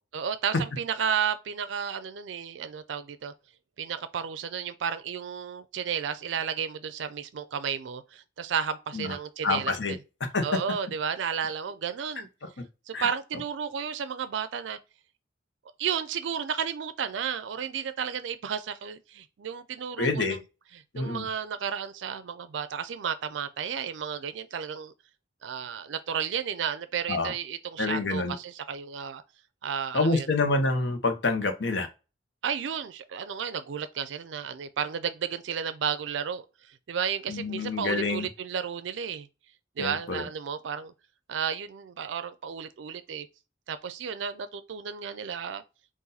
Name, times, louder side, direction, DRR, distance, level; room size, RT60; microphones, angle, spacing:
voice 1, 0.1-3.3 3.8-10.0 10.4-12.3 12.9-14.8 15.8-20.4 20.7-24.9 25.4-29.2 29.6-30.3 32.4-39.3 39.8-40.9 41.3-43.3 43.7-45.6, right 7 dB, 75° right, 0.4 m, -33 dB
voice 2, 9.4-9.9 10.3-10.4 12.9-13.1 20.0-20.4 20.9-21.2 27.1-27.3 27.8-28.3 29.9-31.9 37.3-38.3 39.8-40.2, left 3 dB, 70° left, 0.9 m, -27 dB
4.1 x 2.5 x 3.9 m
head